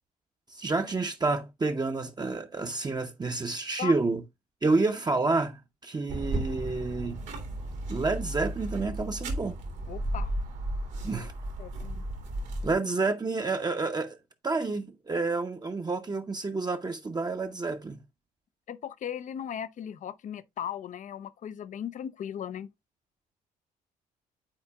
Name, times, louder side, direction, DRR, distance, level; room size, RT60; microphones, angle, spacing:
voice 1, 0.5-4.2 4.6-7.2 7.9-9.6 11.0-11.3 12.6-14.2 14.4-18.0, right 3 dB, 20° right, 0.8 m, -29 dB
sound 1, 6.1-12.7, right 1 dB, 70° right, 2.0 m, -34 dB
voice 2, 9.9-10.3 11.1-11.3 11.6-12.0 18.7-22.7, left 9 dB, 40° left, 0.5 m, -37 dB
11.5 x 4.4 x 2.2 m
figure-of-eight pair, 50°, 19 cm